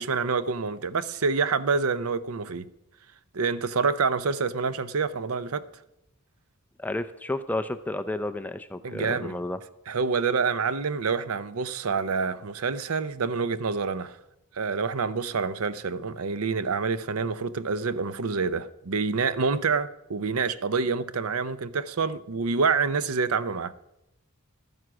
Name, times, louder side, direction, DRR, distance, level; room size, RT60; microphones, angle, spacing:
voice 1, 0.0-2.7 3.3-5.6 8.8-9.4 9.9-14.2 14.5-23.7, right 5 dB, 75° right, 0.6 m, -27 dB
voice 2, 6.8-9.6, left 1 dB, 10° left, 0.4 m, -31 dB
13.0 x 9.4 x 6.1 m
head